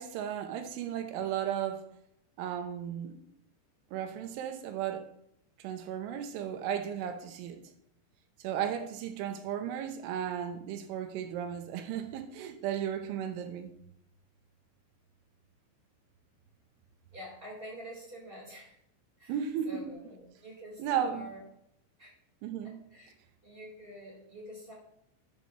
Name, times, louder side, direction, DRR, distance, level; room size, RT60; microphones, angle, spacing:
voice 1, 0.0-1.8 2.4-3.3 3.9-5.1 5.6-7.6 8.4-13.7 19.3-19.9 20.8-21.3 22.4-22.8, right 9 dB, 85° right, 3.4 m, -35 dB
voice 2, 17.1-18.8 19.2-19.3 19.6-21.4 22.0-22.1 22.9-23.1 23.4-24.7, equal, 10° right, 3.6 m, -47 dB
11.5 x 11.0 x 3.1 m
omnidirectional pair, 5.5 m